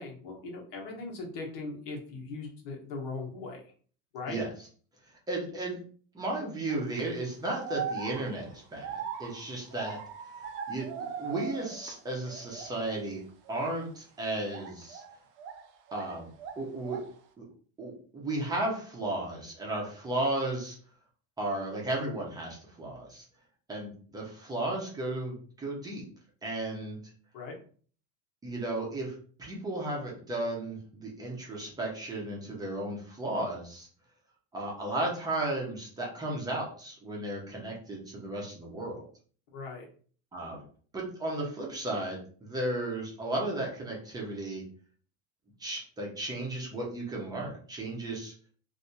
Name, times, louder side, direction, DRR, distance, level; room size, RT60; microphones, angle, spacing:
voice 1, 0.0-3.6 4.1-4.4 27.3-27.6 39.5-39.9, left 3 dB, 75° left, -1 dB, 1.3 m, -39 dB
voice 2, 5.3-5.8 6.1-10.0 10.7-13.2 13.5-15.0 15.9-16.3 16.6-17.0 17.4-17.5 17.8-20.8 21.4-23.3 23.7-26.0 26.4-27.0 28.4-29.1 29.4-33.9 34.5-39.0 40.3-40.6 40.9-44.6 45.6-48.3, right 2 dB, 15° right, -3 dB, 0.8 m, -34 dB
sound 1, 6.7-7.0 7.6-12.0 12.2-13.0 13.4-13.7 14.5-16.1 16.4-17.2, right 6 dB, 45° right, 0.6 m, -40 dB
3.3 x 2.7 x 2.8 m, 0.44 s
cardioid pair, 160°, 29 cm